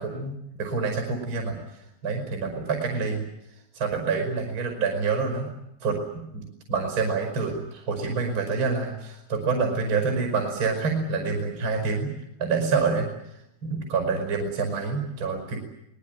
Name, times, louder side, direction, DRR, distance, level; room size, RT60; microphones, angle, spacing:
voice 1, 0.0-1.6 2.0-3.2 3.7-5.5 5.8-6.4 6.7-12.1 12.4-13.1 13.6-15.6, right 4 dB, 30° right, 3 dB, 5.9 m, -27 dB
25.0 x 21.0 x 9.4 m, 0.80 s
omnidirectional pair, 4.7 m